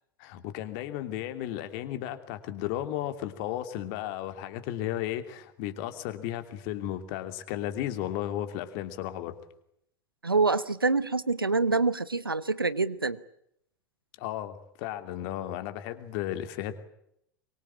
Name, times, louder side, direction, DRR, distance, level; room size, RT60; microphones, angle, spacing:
voice 1, 0.2-9.4 14.2-16.7, left 12 dB, 50° left, 9 dB, 2.9 m, -34 dB
voice 2, 10.2-13.2, right 3 dB, 85° right, 17 dB, 1.0 m, -26 dB
24.0 x 24.0 x 8.6 m, 0.76 s
figure-of-eight pair, 80°, 12 cm